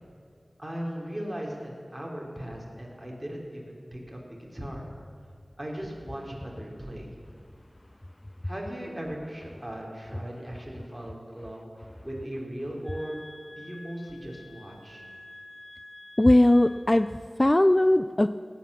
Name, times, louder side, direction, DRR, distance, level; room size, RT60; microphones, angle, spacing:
voice 1, 0.6-4.2 4.5-4.8 5.6-7.1 8.4-11.7 12.0-13.2 13.6-15.0, equal, 10° right, -2 dB, 3.6 m, -38 dB
sound 1, 12.8-17.1, left 1 dB, 75° left, 2.2 m, -49 dB
voice 2, 16.2-18.3, left 1 dB, 25° left, 11 dB, 0.3 m, -20 dB
16.5 x 9.3 x 6.9 m, 2.3 s
wide cardioid pair, 55°, 0 cm